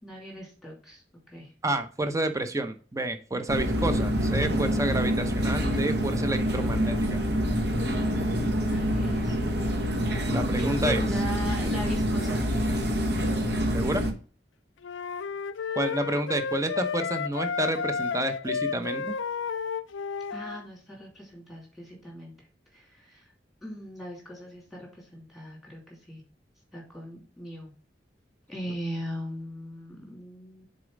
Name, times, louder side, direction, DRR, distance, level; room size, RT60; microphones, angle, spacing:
voice 1, 0.0-1.0 1.3-1.5 8.6-9.4 10.6-12.4 20.3-22.3 22.7-23.3 23.6-26.2 26.7-27.7 28.5-30.7, equal, ahead, -1 dB, 2.7 m, -39 dB
voice 2, 1.6-7.2 10.3-11.1 13.7-14.0 15.8-19.2, right 1 dB, 15° right, 9 dB, 0.7 m, -29 dB
sound 1, 3.5-14.1, equal, 60° right, 1.2 m, -26 dB
sound 2, 14.8-20.6, left 6 dB, 85° left, 0.4 m, -32 dB
6.6 x 4.1 x 5.0 m, 0.40 s
head